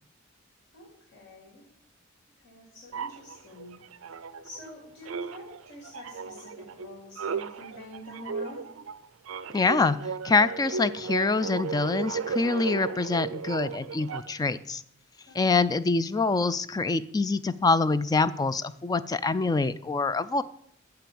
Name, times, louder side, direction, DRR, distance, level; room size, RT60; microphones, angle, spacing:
voice 1, 0.7-1.6 2.4-3.8 4.1-4.2 4.4-8.6 15.3-15.5, left 1 dB, 65° left, -2 dB, 2.8 m, -47 dB
sound 1, 2.9-4.7 5.0-14.5, right 5 dB, 80° right, 0.5 m, -35 dB
voice 2, 9.5-10.0 10.2-14.8 15.3-20.4, left 3 dB, 20° left, 15 dB, 0.3 m, -25 dB
7.6 x 5.8 x 6.9 m, 0.69 s
head